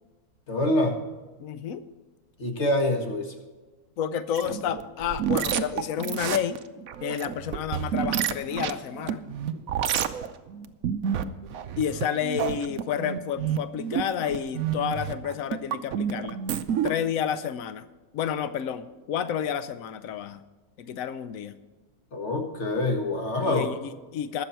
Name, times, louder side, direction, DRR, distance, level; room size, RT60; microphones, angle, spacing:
voice 1, 0.5-1.0 2.4-3.3 22.1-23.7, left 1 dB, 35° left, 3 dB, 1.9 m, -25 dB
voice 2, 1.4-1.8 4.0-6.6 7.0-9.2 11.8-16.4 16.8-17.8 18.1-20.4 20.8-21.6 23.4-24.4, left 8 dB, 85° left, 12 dB, 0.7 m, -30 dB
sound 1, 4.3-16.9, right 9 dB, 65° right, 0.9 m, -29 dB
20.5 x 7.1 x 4.5 m, 1.3 s
omnidirectional pair, 2.2 m